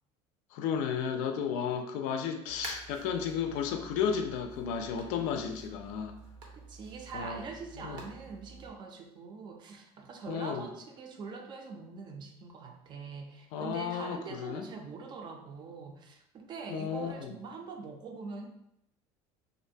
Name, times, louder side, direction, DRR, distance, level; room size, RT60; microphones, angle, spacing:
voice 1, 0.5-6.1 7.1-7.4 7.8-8.0 10.3-10.7 13.5-14.7 16.7-17.4, left 7 dB, 70° left, 5 dB, 0.4 m, -33 dB
sound 1, 2.4-8.7, right 3 dB, 85° right, 0.7 m, -49 dB
voice 2, 6.7-18.5, right 5 dB, 35° right, 3 dB, 0.3 m, -43 dB
2.5 x 2.1 x 2.6 m, 0.77 s
cardioid pair, 140°, 13 cm